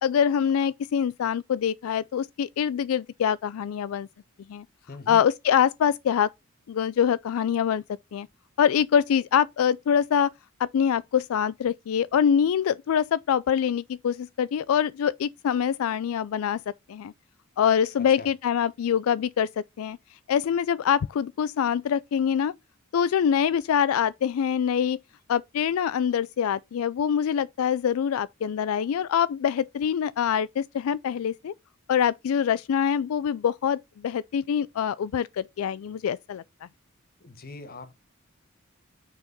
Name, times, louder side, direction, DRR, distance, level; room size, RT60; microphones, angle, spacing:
voice 1, 0.0-4.1 4.5-4.6 5.1-6.3 6.7-7.8 8.1-8.3 8.6-10.3 10.6-16.6 16.9-17.1 17.6-20.0 20.3-22.5 22.9-25.0 25.3-31.5 31.9-36.4, left 8 dB, 80° left, 0.3 m, -24 dB
voice 2, 4.9-5.2 18.0-18.3 37.2-37.9, left 2 dB, 45° left, 1.3 m, -42 dB
6.5 x 5.0 x 5.2 m
head